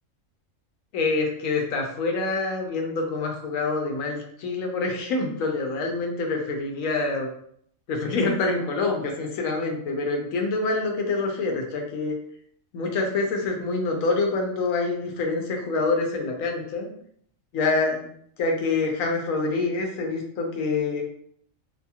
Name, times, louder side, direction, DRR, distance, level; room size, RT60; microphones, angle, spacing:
voice 1, 0.9-7.3 7.9-12.1 12.7-16.9 17.5-18.1 18.4-21.0, left 3 dB, 85° left, 2 dB, 1.0 m, -26 dB
2.7 x 2.7 x 2.3 m, 0.66 s
omnidirectional pair, 1.4 m